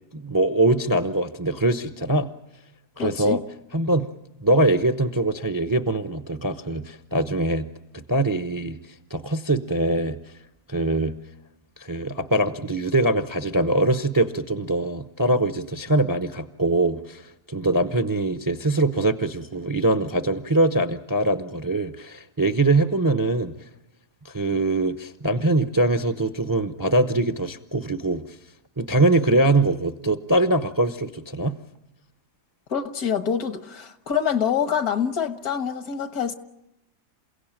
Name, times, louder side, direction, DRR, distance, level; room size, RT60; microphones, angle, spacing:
voice 1, 0.1-2.3 3.0-3.4 3.7-4.1 4.4-7.7 7.9-8.8 9.1-10.2 10.7-11.2 11.8-23.5 24.2-28.2 28.8-31.6, right 2 dB, 20° right, 0.5 m, -23 dB
voice 2, 3.0-3.4 32.7-36.3, left 7 dB, 75° left, 1.8 m, -26 dB
28.5 x 16.5 x 8.9 m
omnidirectional pair, 1.6 m